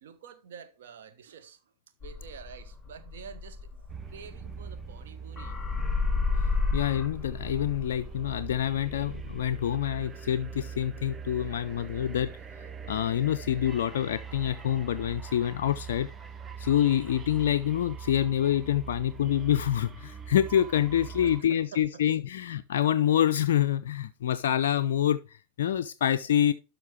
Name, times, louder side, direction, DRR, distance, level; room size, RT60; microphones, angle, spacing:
voice 1, 0.0-1.6 2.0-5.6 6.7-6.8 21.2-22.0, right 7 dB, 60° right, 1.0 m, -48 dB
sound 1, 2.0-5.1 5.4-9.6, left 4 dB, 10° left, 1.4 m, -32 dB
sound 2, 3.9-21.4, right 6 dB, 20° right, 0.6 m, -42 dB
voice 2, 6.7-12.3 12.9-16.1 16.6-25.2 25.6-26.5, left 10 dB, 60° left, 0.3 m, -26 dB
12.0 x 5.8 x 3.2 m
figure-of-eight pair, 90°, 0 cm